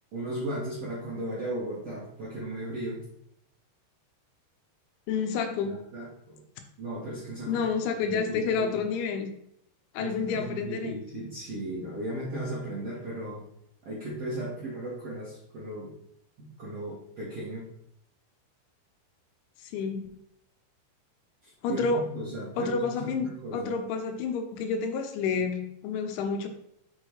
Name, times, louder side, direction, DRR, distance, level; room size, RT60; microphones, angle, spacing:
voice 1, 0.1-3.0 5.6-6.4 6.8-7.6 8.1-8.7 10.0-13.4 13.8-15.9 16.4-17.7 21.4-23.7, right 1 dB, 70° right, -8 dB, 1.5 m, -36 dB
voice 2, 5.1-5.8 7.5-9.3 9.9-11.0 19.6-20.1 21.6-22.1 22.6-26.5, left 5 dB, 85° left, 6 dB, 2.9 m, -29 dB
6.3 x 6.2 x 3.1 m, 0.74 s
omnidirectional pair, 5.5 m